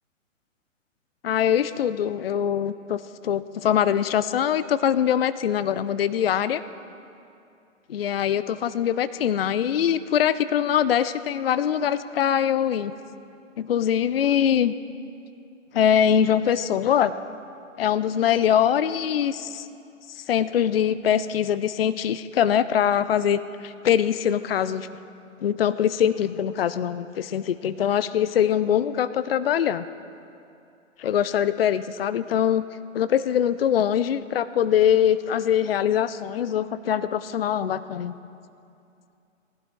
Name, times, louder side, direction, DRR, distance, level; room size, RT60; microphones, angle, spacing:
voice 1, 1.2-6.6 7.9-12.9 13.6-14.7 15.7-17.1 17.8-19.7 20.1-24.9 25.4-29.9 31.0-32.7 32.9-38.2, left 9 dB, 50° left, 15 dB, 0.5 m, -23 dB
19.0 x 11.5 x 3.6 m, 2.6 s
figure-of-eight pair, 125°, 38 cm